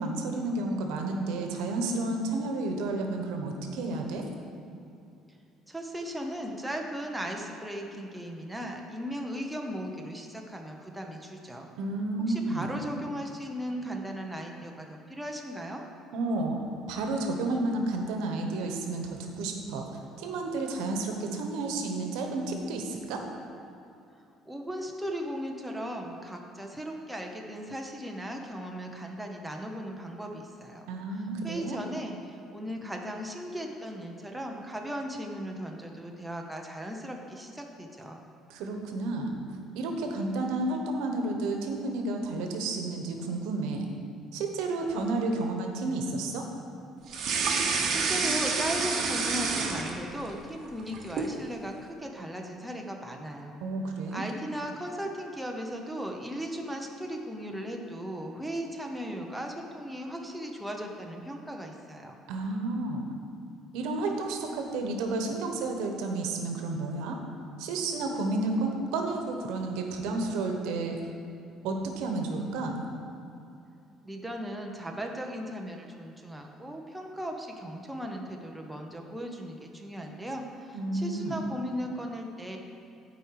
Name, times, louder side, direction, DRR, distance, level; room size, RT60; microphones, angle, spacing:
voice 1, 0.0-4.3 11.8-12.7 16.1-16.6 16.9-19.9 20.2-23.2 30.9-31.8 38.5-39.3 39.7-43.9 44.3-46.5 53.6-54.2 62.3-63.0 63.7-67.2 67.6-71.0 71.6-72.9 80.7-81.4, right 2 dB, 90° right, 3 dB, 1.0 m, -31 dB
voice 2, 5.7-11.7 12.3-15.8 24.4-30.9 31.1-38.3 47.6-53.6 54.1-62.1 74.0-82.6, equal, 5° right, 1 dB, 0.7 m, -37 dB
sound 1, 47.1-50.3 50.7-51.4, right 4 dB, 45° right, 1.0 m, -28 dB
11.5 x 4.7 x 4.7 m, 2.6 s
cardioid pair, 150°, 0 cm